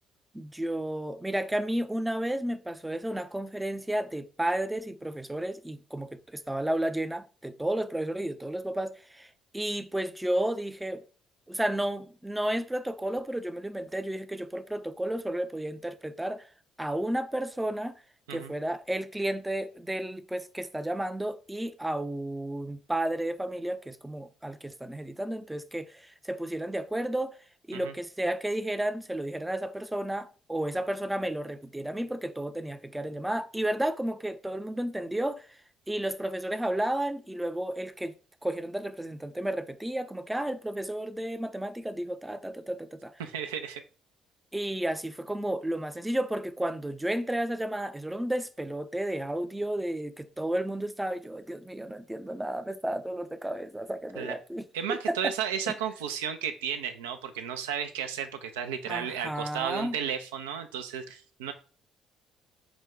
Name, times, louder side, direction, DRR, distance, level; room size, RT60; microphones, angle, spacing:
voice 1, 0.3-11.0 11.5-16.5 16.8-17.9 18.3-27.4 27.7-35.6 35.9-38.1 38.4-43.2 44.5-55.3 55.7-55.8 58.9-60.0, right 1 dB, 10° right, 0.4 m, -32 dB
voice 2, 43.2-43.8 54.2-54.3 54.7-61.5, right 8 dB, 80° right, 0.4 m, -33 dB
4.9 x 2.2 x 3.6 m
figure-of-eight pair, 50°, 0 cm